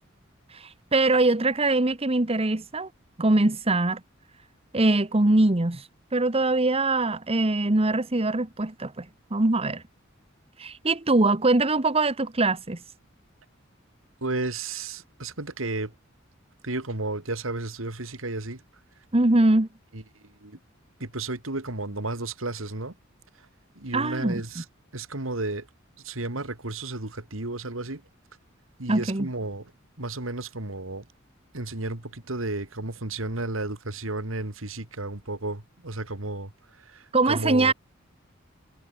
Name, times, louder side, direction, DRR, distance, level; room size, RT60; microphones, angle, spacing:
voice 1, 0.5-2.9 3.2-4.0 4.7-5.9 6.1-9.0 9.3-9.8 10.6-12.8 19.1-19.7 23.9-24.4 28.9-29.3 37.1-37.7, right 2 dB, 30° right, 1.3 m, -22 dB
voice 2, 14.2-15.9 16.6-18.6 19.9-20.0 20.4-20.6 21.0-22.9 23.8-24.6 24.9-25.7 26.0-28.0 28.8-29.7 30.0-31.0 31.5-36.5 36.8-37.7, right 2 dB, 90° right, 2.7 m, -32 dB
head